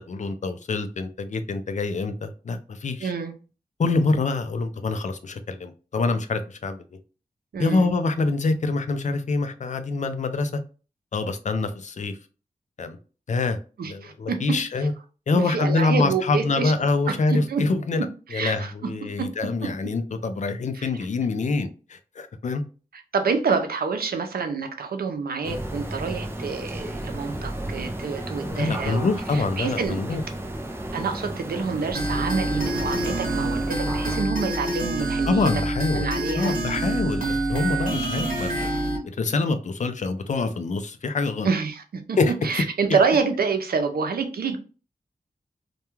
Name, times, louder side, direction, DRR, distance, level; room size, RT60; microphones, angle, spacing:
voice 1, 0.1-3.1 3.8-6.8 7.6-10.6 11.1-12.2 12.8-13.0 13.3-13.6 13.8-14.9 15.3-18.1 18.3-22.6 28.5-30.2 35.2-36.1 36.3-38.7 39.0-41.5 42.2-42.6, left 3 dB, 55° left, 0.4 m, -25 dB
voice 2, 3.0-3.3 7.5-7.9 13.8-14.6 15.5-16.7 17.1-17.6 17.9-18.0 18.3-18.7 19.2-19.3 20.7-20.9 23.1-30.0 30.9-35.5 35.9-36.6 41.4-44.6, right 5 dB, 90° right, 0.5 m, -27 dB
sound 1, 25.4-34.2, right 1 dB, 15° right, 0.4 m, -33 dB
sound 2, 31.9-39.0, right 2 dB, 65° right, 1.1 m, -26 dB
2.2 x 2.2 x 2.9 m
wide cardioid pair, 105°, 15 cm